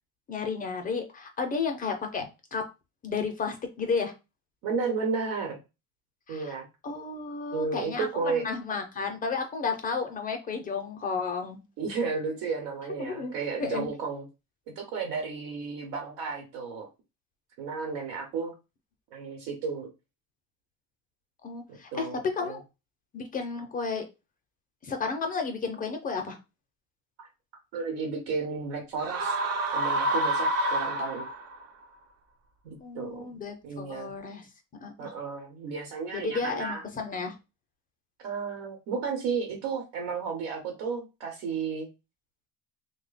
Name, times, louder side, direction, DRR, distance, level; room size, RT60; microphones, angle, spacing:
voice 1, 0.3-2.2 2.5-2.6 3.0-4.1 6.3-6.6 6.8-11.6 13.0-13.3 13.6-13.9 21.4-22.1 22.3-22.6 23.1-24.0 24.8-26.4 32.8-34.5 34.8-35.1 36.1-37.4, left 5 dB, 20° left, 4 dB, 0.4 m, -32 dB
voice 2, 4.6-5.6 6.3-6.7 7.5-8.5 11.8-14.3 14.8-16.9 17.6-18.5 19.1-19.9 21.7-22.6 27.2-27.3 27.7-29.4 29.7-31.3 32.6-33.3 33.6-34.1 35.0-36.8 38.2-41.9, right 5 dB, 80° right, 2 dB, 1.1 m, -33 dB
sound 1, 29.0-31.6, right 1 dB, 40° right, 0.5 m, -28 dB
3.2 x 2.1 x 3.9 m, 0.27 s
cardioid pair, 165°, 41 cm